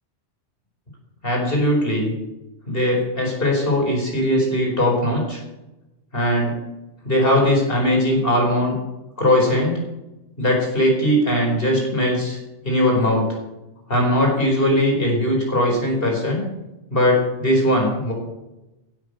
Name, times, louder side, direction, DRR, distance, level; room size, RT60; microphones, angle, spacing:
voice 1, 1.2-2.1 2.7-5.4 6.1-6.5 7.0-8.7 9.2-9.8 10.4-12.4 12.6-13.3 13.9-16.4 16.9-18.1, left 1 dB, 55° left, 0 dB, 4.9 m, -19 dB
15.5 x 9.3 x 6.8 m, 0.97 s
omnidirectional pair, 1.1 m